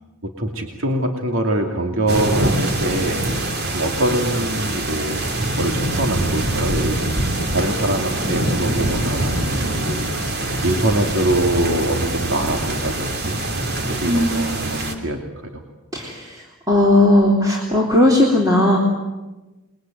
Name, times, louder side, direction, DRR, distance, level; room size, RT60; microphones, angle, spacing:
voice 1, 0.2-3.3 3.7-5.3 5.6-13.4 13.9-15.2 15.5-15.6, right 1 dB, 60° right, 3 dB, 2.8 m, -24 dB
sound 1, 2.1-14.9, right 1 dB, 45° right, 3.1 m, -24 dB
voice 2, 14.1-14.8 15.9-18.8, left 1 dB, 15° right, -2 dB, 3.3 m, -17 dB
28.5 x 22.0 x 9.3 m, 1.1 s
head